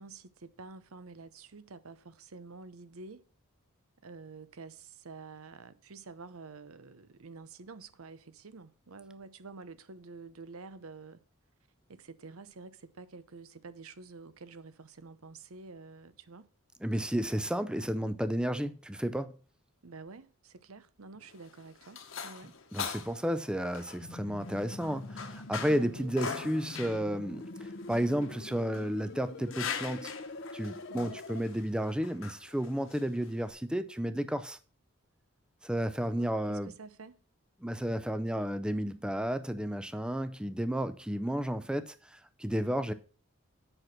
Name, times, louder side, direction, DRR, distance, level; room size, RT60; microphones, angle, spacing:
voice 1, 0.0-3.2 4.0-11.2 11.9-16.5 19.8-22.6 25.7-26.1 30.9-31.2 36.2-37.2, right 4 dB, 80° right, 0.8 m, -49 dB
voice 2, 16.8-19.3 22.7-30.1 30.5-34.6 35.6-36.7 37.6-42.9, equal, 5° right, 0.5 m, -32 dB
sound 1, 21.2-33.5, left 6 dB, 65° left, 1.3 m, -42 dB
sound 2, 24.0-31.4, left 2 dB, 50° left, 0.7 m, -44 dB
7.9 x 6.0 x 6.0 m
head